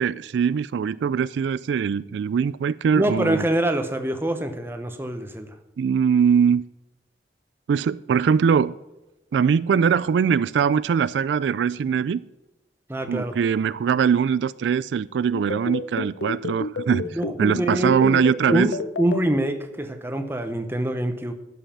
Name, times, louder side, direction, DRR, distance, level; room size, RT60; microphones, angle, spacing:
voice 1, 0.0-3.4 5.8-6.6 7.7-8.7 9.3-12.2 13.1-17.0 17.4-18.7, right 7 dB, 85° right, 18 dB, 0.3 m, -21 dB
voice 2, 2.9-5.6 12.9-13.4 17.1-18.3 18.5-21.3, right 1 dB, 15° right, 7 dB, 0.8 m, -25 dB
sound 1, 15.3-19.2, left 3 dB, 90° left, 0.6 m, -29 dB
11.5 x 5.6 x 7.1 m, 0.98 s
head